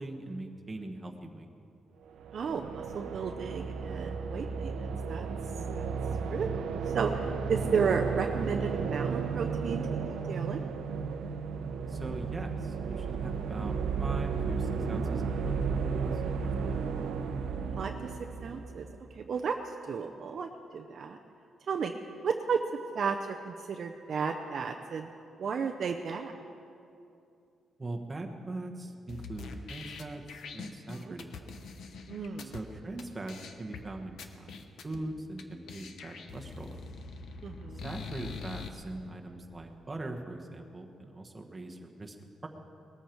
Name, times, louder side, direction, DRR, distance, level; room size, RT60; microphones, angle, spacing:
voice 1, 0.0-1.5 11.9-16.9 27.8-31.3 32.4-36.8 37.8-42.2 42.4-42.5, right 2 dB, 15° right, 2 dB, 1.2 m, -41 dB
sound 1, 2.1-19.1, right 5 dB, 80° right, 0.8 m, -33 dB
voice 2, 2.3-5.3 5.7-5.9 6.3-6.5 6.9-10.6 17.8-17.9 18.4-18.9 19.2-19.6 19.9-21.2 21.7-21.9 22.2-22.6 22.9-25.1 25.4-26.4 30.9-31.1 32.1-32.5 37.4-37.9, right 6 dB, 45° right, 4 dB, 0.6 m, -33 dB
sound 2, 29.1-32.6 33.0-33.1 33.3-33.8 34.2-35.0 35.4-35.5 35.7-38.7, left 5 dB, 65° left, 1.0 m, -44 dB
20.0 x 14.0 x 4.6 m, 2.6 s
cardioid pair, 160°, 0 cm